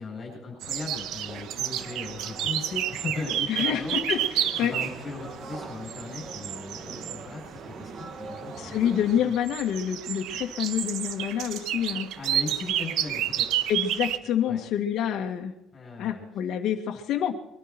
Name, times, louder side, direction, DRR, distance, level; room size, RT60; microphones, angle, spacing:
voice 1, 0.0-4.0 4.6-8.8 9.1-9.3 12.2-13.7 14.4-14.6 15.7-16.2, left 3 dB, 30° left, 0 dB, 8.0 m, -38 dB
sound 1, 0.6-7.6 7.9-14.2, right 11 dB, 65° right, 1.2 m, -31 dB
sound 2, 1.2-9.2, right 3 dB, 30° right, 1.6 m, -43 dB
voice 2, 3.5-4.7 8.6-12.1 13.7-15.5 16.0-17.4, left 9 dB, 55° left, 2 dB, 1.9 m, -27 dB
22.5 x 13.5 x 4.4 m, 0.81 s
cardioid pair, 150°, 0 cm